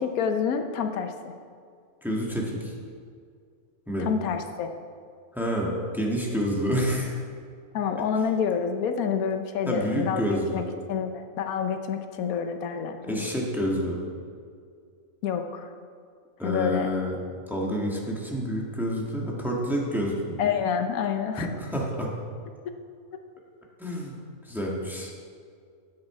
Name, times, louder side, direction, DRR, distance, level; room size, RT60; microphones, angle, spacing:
voice 1, 0.0-1.3 4.0-4.7 7.7-10.6 10.9-13.3 15.2-15.7 16.4-16.9 20.4-21.5, left 7 dB, 85° left, 7 dB, 1.2 m, -28 dB
voice 2, 2.0-2.7 3.9-4.1 5.3-7.2 9.7-10.6 13.1-14.0 16.4-17.1 17.5-20.4 21.4-22.1 23.8-24.2 24.4-25.1, equal, ahead, -2 dB, 1.4 m, -28 dB
10.0 x 8.7 x 4.8 m, 2.2 s
omnidirectional pair, 1.5 m